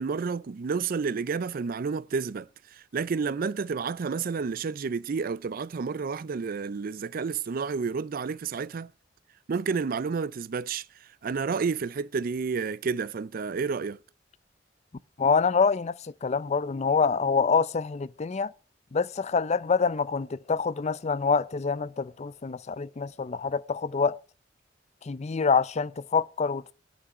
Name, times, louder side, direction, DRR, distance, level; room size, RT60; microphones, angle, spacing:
voice 1, 0.0-8.9 9.5-14.0, right 5 dB, 55° right, 0.4 m, -30 dB
voice 2, 15.2-18.5 18.9-24.2 25.0-26.7, left 5 dB, 40° left, 0.5 m, -26 dB
9.8 x 6.0 x 8.6 m
head